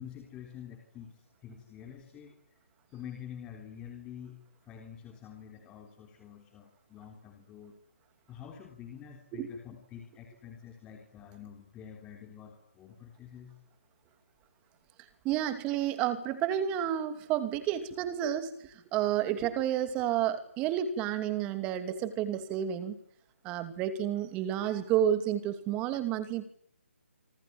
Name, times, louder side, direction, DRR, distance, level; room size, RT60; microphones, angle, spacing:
voice 1, 0.0-2.4 2.9-4.4 4.6-7.8 8.3-13.5, left 9 dB, 15° left, 3 dB, 3.6 m, -47 dB
voice 2, 15.2-23.0 23.4-26.5, right 10 dB, 15° right, 11 dB, 2.8 m, -30 dB
26.0 x 26.0 x 8.9 m, 0.65 s
hypercardioid pair, 160°, 7 cm